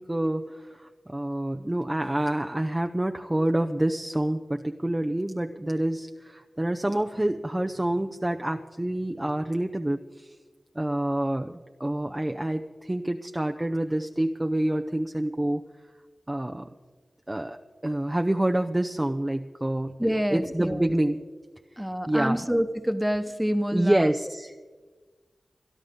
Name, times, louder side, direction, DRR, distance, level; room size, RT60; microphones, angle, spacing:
voice 1, 0.0-10.4 10.7-15.6 16.3-16.7 17.3-17.6 17.8-21.2 21.7-21.8 22.1-22.4 23.7-24.6, right 1 dB, 20° right, 5 dB, 0.7 m, -27 dB
voice 2, 20.0-20.9 21.8-24.1, equal, 5° right, 9 dB, 1.2 m, -27 dB
27.5 x 10.5 x 3.8 m, 1.4 s
cardioid pair, 55°, 0 cm